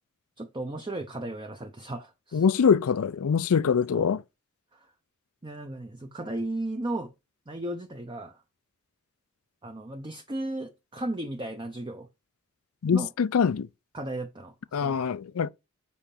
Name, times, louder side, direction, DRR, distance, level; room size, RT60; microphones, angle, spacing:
voice 1, 0.4-2.5 3.9-4.1 4.7-4.9 5.4-7.1 7.5-8.4 9.6-12.1 12.9-13.1 13.9-15.0, right 1 dB, 20° right, 0.6 m, -35 dB
voice 2, 2.3-4.2 12.8-13.7 14.7-15.5, left 6 dB, 80° left, 0.4 m, -24 dB
7.1 x 5.0 x 4.3 m
head